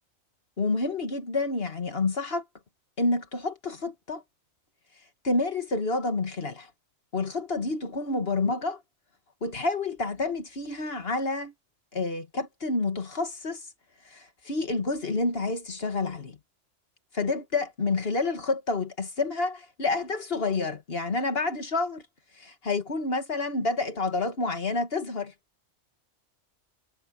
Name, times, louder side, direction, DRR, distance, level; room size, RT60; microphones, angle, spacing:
voice 1, 0.6-2.4 3.0-4.2 5.2-6.7 7.1-8.8 9.4-11.5 11.9-13.7 14.0-16.4 17.1-22.1 22.4-25.3, left 3 dB, 50° left, 2.0 m, -29 dB
omnidirectional pair, 1.3 m